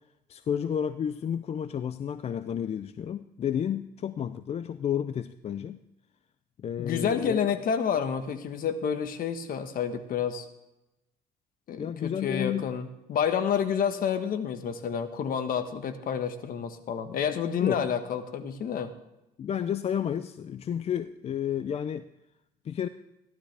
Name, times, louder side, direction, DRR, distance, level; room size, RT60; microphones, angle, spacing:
voice 1, 0.3-5.8 6.6-7.4 11.8-12.7 17.6-17.8 19.4-22.0 22.6-22.9, left 9 dB, 40° left, 12 dB, 0.4 m, -31 dB
voice 2, 6.8-10.4 11.7-18.9, left 7 dB, 55° left, 8 dB, 1.3 m, -29 dB
14.5 x 12.5 x 3.4 m, 0.92 s
cardioid pair, 110°, 17 cm